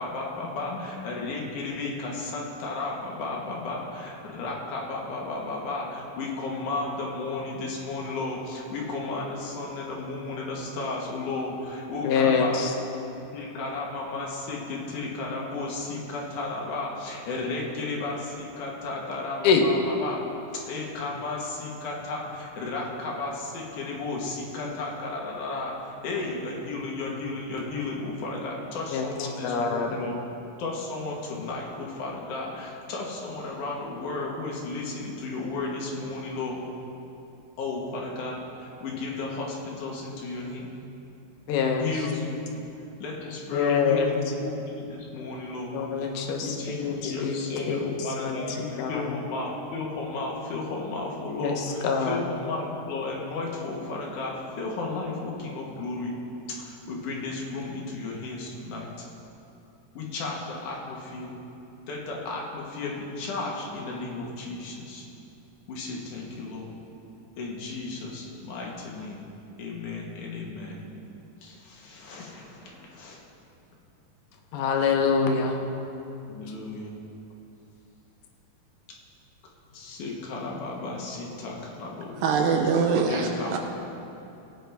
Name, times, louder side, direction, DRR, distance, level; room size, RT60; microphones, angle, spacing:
voice 1, 0.0-12.7 13.1-20.2 20.7-30.2 30.6-36.6 37.6-40.7 41.8-42.7 43.0-56.2 56.6-59.1 59.9-61.3 61.9-65.1 65.7-66.7 67.4-69.2 69.6-70.8 71.4-73.2 76.3-77.0 79.7-82.2 83.0-83.6, left 3 dB, 60° left, -2 dB, 2.7 m, -34 dB
voice 2, 12.0-12.7 19.4-19.6 28.9-29.0 29.4-30.0 41.5-41.9 43.5-44.1 45.7-46.5 46.8-47.4 47.7-47.8 48.2-48.3 48.8-48.9 51.4-51.5 51.8-52.2 74.5-75.6, left 6 dB, 80° left, 3 dB, 2.8 m, -24 dB
voice 3, 82.2-83.6, right 5 dB, 75° right, 3 dB, 2.4 m, -23 dB
17.5 x 9.1 x 3.5 m, 2.8 s
omnidirectional pair, 4.3 m